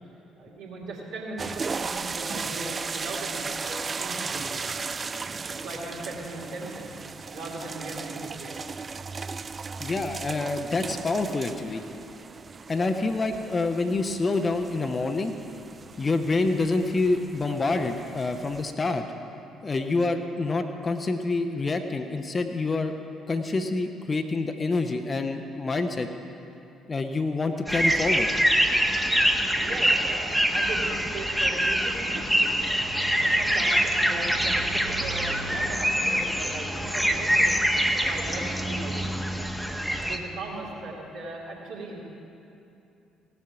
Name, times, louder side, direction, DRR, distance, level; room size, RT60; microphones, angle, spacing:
voice 1, 0.4-4.8 5.4-7.0 7.3-8.6 29.4-32.6 33.2-37.8 38.1-39.4 39.8-42.0, right 2 dB, 65° right, -4 dB, 2.5 m, -38 dB
sound 1, 1.4-18.7, right 4 dB, 35° right, 0.3 m, -36 dB
voice 2, 9.8-11.8 12.7-15.3 16.0-19.0 19.6-22.9 23.3-26.1 26.9-28.3, left 3 dB, 30° left, 6 dB, 0.8 m, -27 dB
sound 2, 27.7-40.2, equal, ahead, 1.0 m, -25 dB
17.0 x 7.6 x 5.9 m, 2.8 s
figure-of-eight pair, 45°, 0 cm